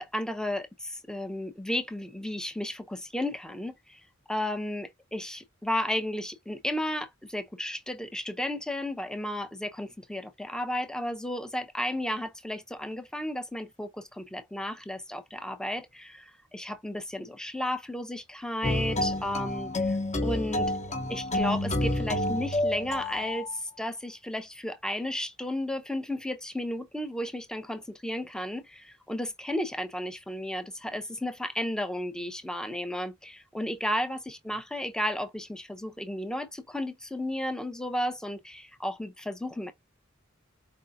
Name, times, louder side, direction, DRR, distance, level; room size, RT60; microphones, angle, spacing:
voice 1, 0.0-4.0 4.3-20.0 20.2-20.7 21.1-39.7, left 1 dB, 5° left, 0.6 m, -33 dB
sound 1, 18.6-23.5, left 1 dB, 35° left, 0.9 m, -29 dB
4.8 x 3.8 x 2.4 m
head